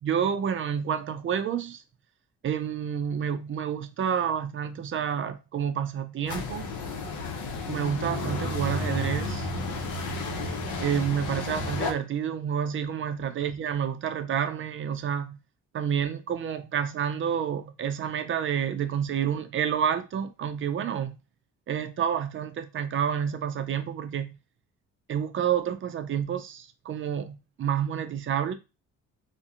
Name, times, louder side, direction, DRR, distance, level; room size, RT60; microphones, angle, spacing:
voice 1, 0.0-1.8 2.4-6.7 7.6-9.5 10.8-15.4 15.7-21.1 21.7-24.3 25.1-28.5, right 8 dB, 45° right, 0.4 m, -29 dB
sound 1, 6.3-11.9, left 2 dB, 75° left, 0.7 m, -32 dB
2.6 x 2.1 x 2.4 m
cardioid pair, 90°, 30 cm